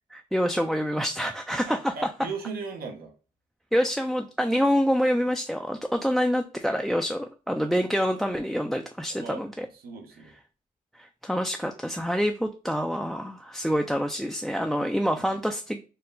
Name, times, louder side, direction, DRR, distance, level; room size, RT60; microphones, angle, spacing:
voice 1, 0.1-1.9 3.7-9.7 10.9-15.8, equal, ahead, 5 dB, 0.3 m, -26 dB
voice 2, 1.7-3.1 9.1-9.5 9.7-10.4 14.8-14.9 15.2-15.4, right 5 dB, 85° right, 2 dB, 0.9 m, -38 dB
4.4 x 2.1 x 3.7 m, 0.34 s
cardioid pair, 110°, 15 cm